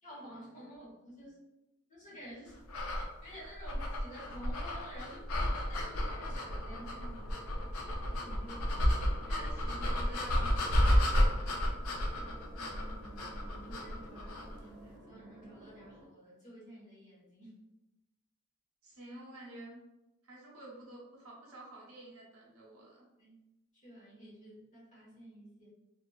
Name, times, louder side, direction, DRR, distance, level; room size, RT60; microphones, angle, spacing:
voice 1, 0.0-1.4 1.9-2.6 3.2-7.3 8.0-9.3 12.2-17.6 23.2-23.4 23.8-25.7, equal, 35° left, -6 dB, 1.2 m, -51 dB
sound 1, 2.7-14.6, equal, 80° left, 0.5 m, -32 dB
sound 2, 5.8-16.1, right 1 dB, 25° right, 0.6 m, -54 dB
voice 2, 9.3-11.9 18.8-19.8 20.2-23.0, right 1 dB, 70° right, -3 dB, 0.9 m, -50 dB
2.7 x 2.6 x 2.3 m, 0.96 s
head